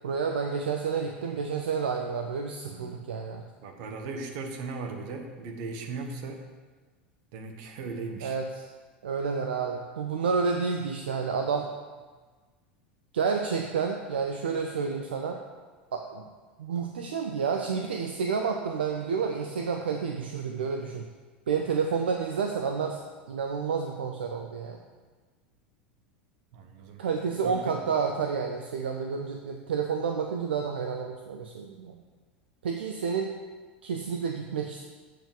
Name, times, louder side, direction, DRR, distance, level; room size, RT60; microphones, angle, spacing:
voice 1, 0.0-3.4 8.2-8.6 9.0-11.7 13.1-15.4 15.9-16.3 16.6-21.1 21.5-23.0 23.3-24.8 27.0-32.0 32.6-33.3 33.8-34.8, right 5 dB, 70° right, 3 dB, 0.6 m, -30 dB
voice 2, 2.6-3.0 3.6-6.5 7.3-8.4 26.5-27.0 27.4-27.8, right 4 dB, 55° right, 3 dB, 1.2 m, -38 dB
7.6 x 4.7 x 6.8 m, 1.4 s
figure-of-eight pair, 80°, 6 cm